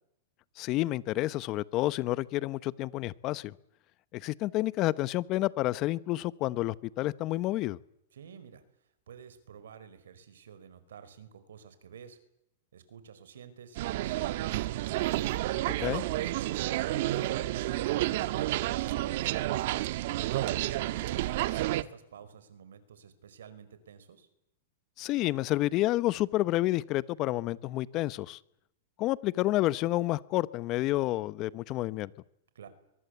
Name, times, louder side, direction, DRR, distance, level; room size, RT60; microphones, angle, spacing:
voice 1, 0.6-3.5 4.1-7.8 15.8-16.0 25.0-28.4 29.0-32.1, left 16 dB, 40° left, 19 dB, 0.9 m, -29 dB
voice 2, 8.1-8.6 9.1-12.2 12.7-15.1 15.7-19.5 20.2-24.3 32.5-32.7, right 7 dB, 85° right, 12 dB, 5.0 m, -49 dB
sound 1, 13.8-21.8, right 15 dB, 60° right, 1.4 m, -30 dB
24.0 x 23.0 x 8.2 m, 0.80 s
hypercardioid pair, 135°, 0 cm